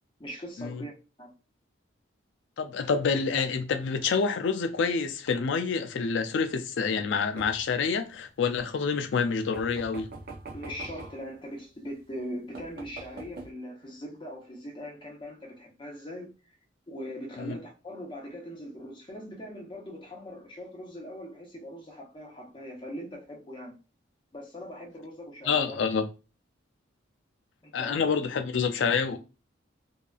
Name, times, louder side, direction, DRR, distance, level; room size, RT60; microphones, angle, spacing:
voice 1, 0.2-0.9 1.2-1.3 10.5-16.3 16.9-23.7 24.3-25.8 27.6-28.0, equal, 25° left, 0.7 m, -41 dB
voice 2, 2.6-10.1 17.4-17.6 25.5-26.1 27.7-29.2, left 5 dB, 65° left, 0.4 m, -27 dB
sound 1, 7.4-7.8 9.5-11.3 12.1-12.2 12.6-13.5, right 3 dB, 50° right, 0.6 m, -43 dB
2.7 x 2.3 x 2.3 m
head